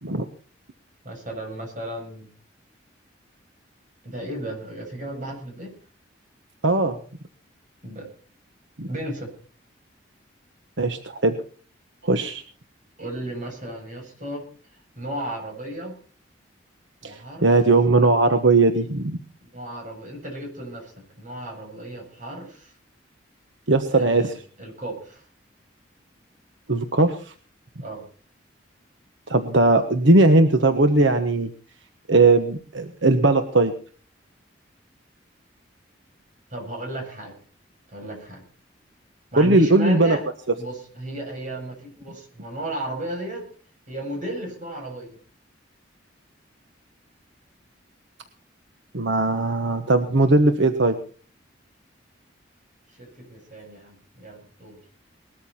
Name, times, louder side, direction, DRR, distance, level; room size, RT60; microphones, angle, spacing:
voice 1, 1.0-2.3 4.0-5.7 7.8-8.1 8.9-9.3 13.0-14.4 15.0-16.0 17.0-17.5 19.4-22.7 23.9-25.2 27.8-28.0 36.5-37.3 37.9-38.4 39.3-40.2 40.6-43.5 43.9-45.2 53.0-54.8, right 1 dB, 40° right, 2 dB, 7.9 m, -34 dB
voice 2, 6.6-7.0 8.8-8.9 10.8-11.4 12.0-12.4 17.0-19.2 23.7-24.3 26.7-27.3 29.3-31.5 32.1-33.7 39.4-40.2 48.9-51.0, right 2 dB, 75° right, 7 dB, 1.2 m, -19 dB
20.0 x 13.5 x 4.4 m, 0.41 s
head